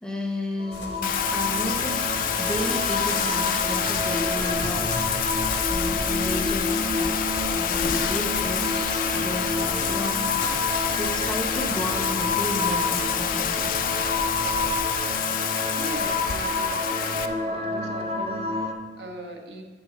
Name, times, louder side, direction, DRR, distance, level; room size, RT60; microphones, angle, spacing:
voice 1, 0.0-4.9 5.7-10.4 10.9-13.7, left 1 dB, 5° left, 1 dB, 0.7 m, -33 dB
sound 1, 0.6-18.7, left 2 dB, 30° right, 0.6 m, -29 dB
sound 2, 0.7-15.0, left 1 dB, 75° left, 1.0 m, -37 dB
Bathtub (filling or washing), 1.0-17.3, left 9 dB, 50° left, 0.4 m, -28 dB
voice 2, 6.4-6.8 15.8-19.6, right 1 dB, 65° right, 3 dB, 0.8 m, -39 dB
8.0 x 3.8 x 6.0 m, 1.3 s
head